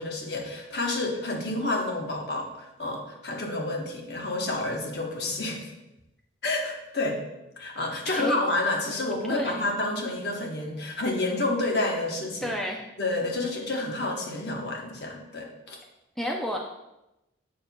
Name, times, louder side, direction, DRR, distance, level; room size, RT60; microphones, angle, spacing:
voice 1, 0.0-5.7 6.4-7.2 7.6-12.5 13.0-15.8, left 2 dB, 60° left, 0 dB, 1.0 m, -29 dB
voice 2, 9.3-9.7 12.4-12.8 16.2-16.6, equal, ahead, -1 dB, 0.4 m, -30 dB
7.7 x 6.4 x 2.3 m, 0.92 s
head